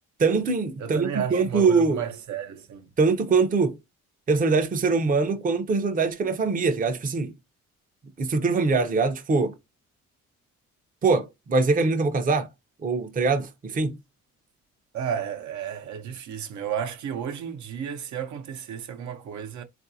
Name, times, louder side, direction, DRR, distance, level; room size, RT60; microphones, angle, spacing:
voice 1, 0.2-2.0 3.0-3.8 4.3-7.3 8.2-9.5 11.0-12.5 12.8-14.0, right 4 dB, 30° right, 0.6 m, -23 dB
voice 2, 0.8-2.9 14.9-19.6, right 8 dB, 70° right, 0.8 m, -33 dB
3.7 x 2.5 x 2.6 m
cardioid pair, 90°, 30 cm